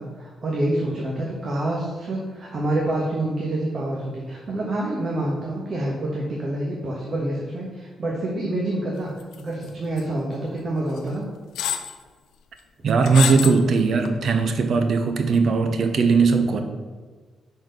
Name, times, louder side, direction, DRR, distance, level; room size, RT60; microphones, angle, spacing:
voice 1, 0.0-9.1 9.4-11.2, right 1 dB, 40° right, -3 dB, 1.2 m, -27 dB
sound 1, 9.3-9.7 10.0-10.1 11.0-11.1 11.6-11.9 13.0-13.6 14.0-14.1, left 9 dB, 90° left, 0.5 m, -26 dB
voice 2, 12.8-16.6, right 4 dB, 60° right, 6 dB, 0.8 m, -19 dB
6.2 x 4.3 x 5.2 m, 1.4 s
cardioid pair, 100°, 0 cm